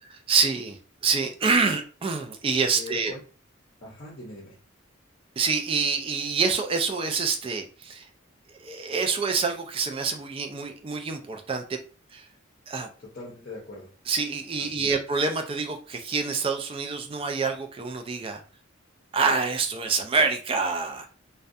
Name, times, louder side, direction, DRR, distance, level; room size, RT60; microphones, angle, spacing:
voice 1, 0.1-3.1 5.4-8.1 8.6-11.8 12.1-12.3 12.7-12.9 14.1-18.4 19.1-21.1, right 4 dB, 25° right, 5 dB, 0.3 m, -26 dB
voice 2, 2.7-3.2 3.8-4.6 13.0-13.9 14.6-14.9, left 2 dB, 45° left, -3 dB, 0.6 m, -41 dB
2.3 x 2.1 x 2.6 m, 0.37 s
head